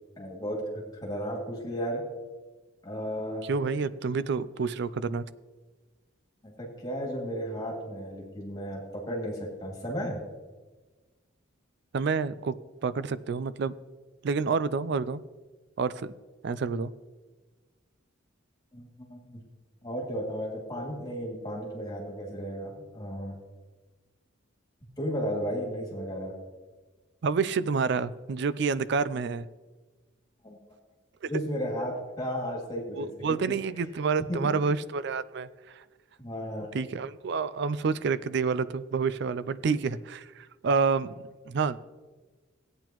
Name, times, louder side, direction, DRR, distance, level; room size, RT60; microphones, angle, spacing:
voice 1, 0.2-0.6 1.0-2.0 2.8-3.4 6.4-10.2 18.7-19.4 19.8-23.4 25.0-26.3 30.4-30.6 31.3-33.4 34.3-34.6 36.2-36.7, equal, 20° left, -3 dB, 2.4 m, -34 dB
voice 2, 3.5-5.2 11.9-12.6 12.8-13.7 14.2-15.2 15.8-16.1 16.4-16.9 27.2-29.5 33.0-35.5 35.8-35.9 36.7-41.8, right 5 dB, 55° right, 16 dB, 0.4 m, -28 dB
15.0 x 8.9 x 3.0 m, 1.3 s
head